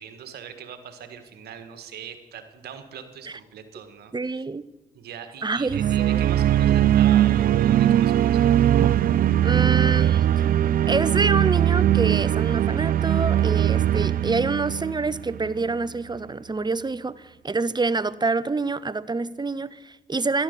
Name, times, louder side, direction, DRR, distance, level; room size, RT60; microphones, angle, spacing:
voice 1, 0.0-4.4 4.9-8.7, right 8 dB, 75° right, 9 dB, 1.7 m, -41 dB
voice 2, 4.1-4.7 5.4-6.2 8.8-8.9 9.4-10.3 10.9-20.4, right 3 dB, 25° right, 18 dB, 0.9 m, -27 dB
sound 1, 5.7-15.7, right 11 dB, 60° right, 0.5 m, -20 dB
13.0 x 11.5 x 8.2 m, 1.0 s
hypercardioid pair, 45°, 16 cm